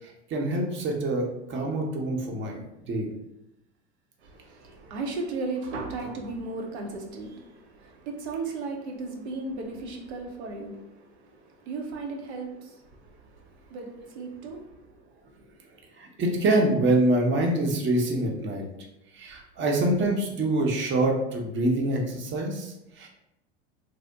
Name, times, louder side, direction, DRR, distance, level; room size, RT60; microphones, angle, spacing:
voice 1, 0.0-3.1 16.0-18.6 19.1-23.1, right 1 dB, 35° right, 0 dB, 0.8 m, -26 dB
voice 2, 4.2-15.8, right 3 dB, 80° right, 1 dB, 0.8 m, -36 dB
2.8 x 2.1 x 3.3 m, 0.88 s
hypercardioid pair, 90°, 33 cm